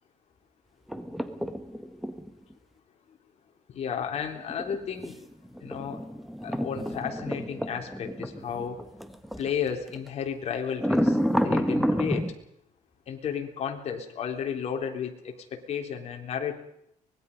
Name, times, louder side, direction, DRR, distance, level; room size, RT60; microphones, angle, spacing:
sound 1, 0.9-2.3 4.4-9.5 9.9-10.1 10.8-12.3, equal, ahead, 1.6 m, -29 dB
voice 1, 3.7-5.1 5.6-6.0 6.4-8.8 9.4-11.2 11.4-12.3 13.1-16.6, left 7 dB, 50° left, 3 dB, 3.7 m, -33 dB
24.5 x 21.0 x 5.4 m, 0.74 s
cardioid pair, 120°, 14 cm